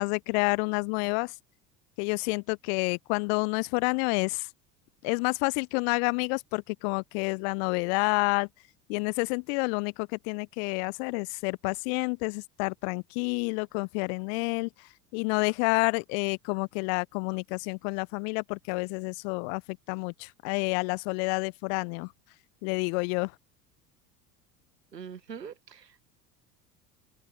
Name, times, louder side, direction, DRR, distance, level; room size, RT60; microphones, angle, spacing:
voice 1, 0.0-1.3 2.0-4.5 5.0-8.5 8.9-14.9 15.1-19.6 19.9-22.1 22.6-23.3, left 38 dB, 40° left, 0.5 m, -29 dB
voice 2, 24.9-26.0, right 7 dB, 80° right, 1.7 m, -43 dB
open air
figure-of-eight pair, 70°, 49 cm